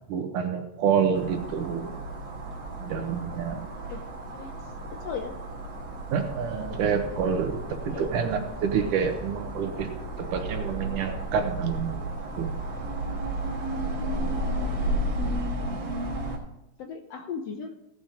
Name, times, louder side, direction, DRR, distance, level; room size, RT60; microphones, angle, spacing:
voice 1, 0.1-1.9 2.8-3.7 6.1-12.0 12.4-12.5, right 7 dB, 80° right, 6 dB, 2.7 m, -28 dB
sound 1, 1.1-16.4, right 1 dB, 45° right, 2.0 m, -33 dB
voice 2, 5.0-5.4 7.9-8.1 14.3-15.4 16.8-17.8, left 6 dB, 70° left, 5 dB, 1.6 m, -38 dB
17.5 x 6.1 x 5.1 m, 0.88 s
omnidirectional pair, 3.6 m